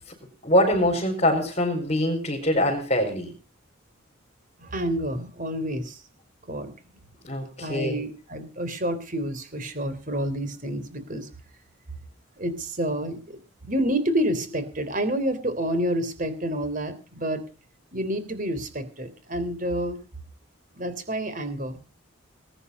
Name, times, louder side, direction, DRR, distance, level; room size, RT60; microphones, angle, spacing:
voice 1, 0.4-3.3 7.2-8.0, left 1 dB, 35° left, -3 dB, 5.0 m, -23 dB
voice 2, 4.6-6.0 6.5-6.7 7.6-11.3 12.4-17.4 17.9-20.0 20.7-21.8, right 1 dB, 40° right, 11 dB, 3.4 m, -29 dB
20.5 x 9.9 x 5.4 m, 0.36 s
head